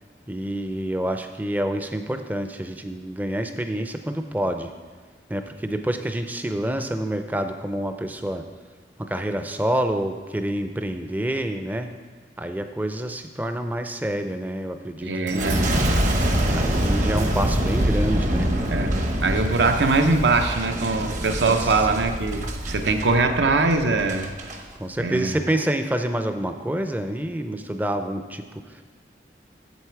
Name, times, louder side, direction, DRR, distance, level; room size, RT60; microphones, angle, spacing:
voice 1, 0.3-4.7 5.3-8.4 9.0-11.9 12.4-15.7 16.5-18.5 21.5-21.8 24.8-28.8, right 1 dB, 10° right, 7 dB, 0.4 m, -27 dB
voice 2, 15.0-15.7 18.7-24.3 25.0-25.3, right 3 dB, 75° right, 6 dB, 0.7 m, -22 dB
Boom, 15.3-24.6 25.2-25.6, right 1 dB, 45° right, 0.9 m, -25 dB
8.2 x 7.6 x 4.6 m, 1.5 s
head